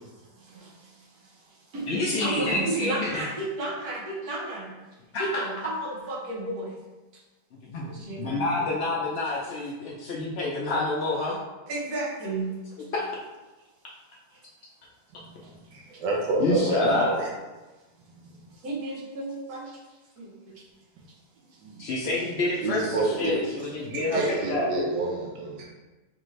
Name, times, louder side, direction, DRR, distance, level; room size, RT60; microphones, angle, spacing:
voice 1, 0.3-4.8 5.2-6.8 7.8-8.9 11.7-12.9 14.3-14.4 15.4-15.5 18.5-19.8 20.2-20.6, right 2 dB, 65° right, -3 dB, 1.3 m, -33 dB
voice 2, 1.9-3.2 5.1-5.4 7.6-11.4 16.4-17.1 21.8-24.7, left 2 dB, 85° left, -4 dB, 0.5 m, -28 dB
voice 3, 15.4-17.3 21.6-21.8 22.6-25.6, right 3 dB, 85° right, -2 dB, 1.3 m, -29 dB
4.8 x 2.5 x 3.1 m, 1.1 s
omnidirectional pair, 1.8 m